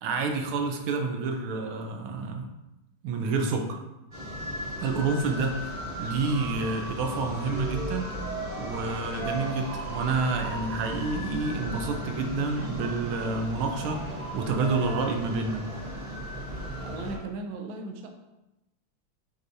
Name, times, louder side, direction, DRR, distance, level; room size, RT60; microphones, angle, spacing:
voice 1, 0.0-2.5 3.0-3.8 4.8-8.1 8.6-15.7, right 3 dB, 90° right, 3 dB, 1.7 m, -29 dB
sound 1, 4.1-17.2, right 1 dB, 30° right, 1.2 m, -36 dB
voice 2, 16.8-18.1, right 3 dB, 75° right, 4 dB, 1.4 m, -37 dB
8.1 x 4.3 x 2.7 m, 0.96 s
omnidirectional pair, 2.3 m